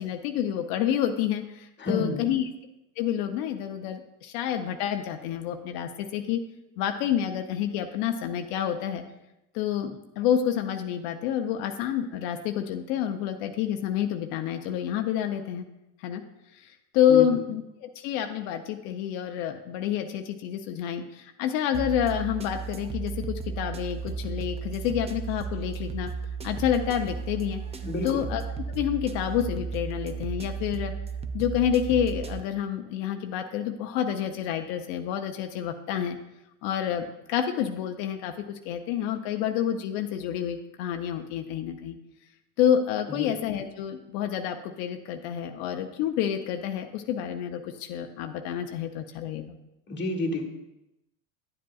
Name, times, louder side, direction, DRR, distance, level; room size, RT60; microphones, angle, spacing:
voice 1, 0.0-2.5 3.0-6.4 6.8-9.0 9.5-15.7 16.0-16.2 16.5-26.1 26.4-27.6 28.0-28.4 28.7-30.9 31.3-36.2 36.6-42.0 42.6-49.6, left 9 dB, 80° left, 5 dB, 0.7 m, -28 dB
voice 2, 1.8-2.2 17.1-17.3 27.8-28.2 43.1-43.3 49.9-50.4, left 2 dB, 25° left, 1 dB, 1.3 m, -30 dB
sound 1, 21.7-32.4, right 5 dB, 15° right, 0.3 m, -34 dB
10.5 x 7.6 x 2.3 m, 0.91 s
supercardioid pair, 100°, 48 cm